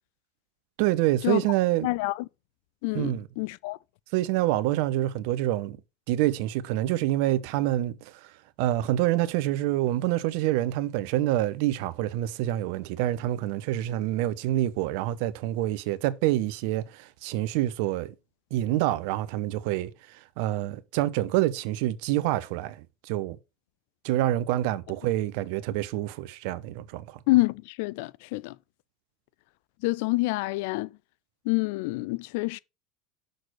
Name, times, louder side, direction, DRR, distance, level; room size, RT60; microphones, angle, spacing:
voice 1, 0.8-1.9 2.9-3.3 4.1-5.8 6.1-8.3 8.6-18.1 18.5-23.4 24.0-27.2, right 14 dB, 70° right, 0.8 m, -27 dB
voice 2, 1.8-2.2 2.8-3.8 27.3-28.6 29.8-30.9 31.5-32.6, left 21 dB, 70° left, 0.3 m, -27 dB
6.4 x 4.0 x 6.4 m
hypercardioid pair, 85°, 0 cm